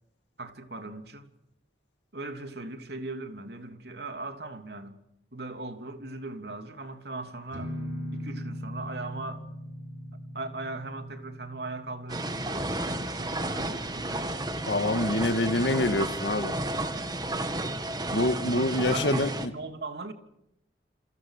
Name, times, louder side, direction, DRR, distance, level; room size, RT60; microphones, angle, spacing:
voice 1, 0.4-1.3 2.1-5.0 5.3-7.7 8.1-9.4 10.3-14.4 18.5-20.1, right 2 dB, 70° right, 3.1 m, -39 dB
sound 1, 7.5-15.1, equal, 90° right, 5.4 m, -41 dB
sound 2, 12.1-19.5, right 1 dB, 25° right, 1.9 m, -32 dB
voice 2, 14.7-16.5 18.1-19.5, left 1 dB, 85° left, 1.9 m, -26 dB
29.0 x 27.0 x 6.7 m
head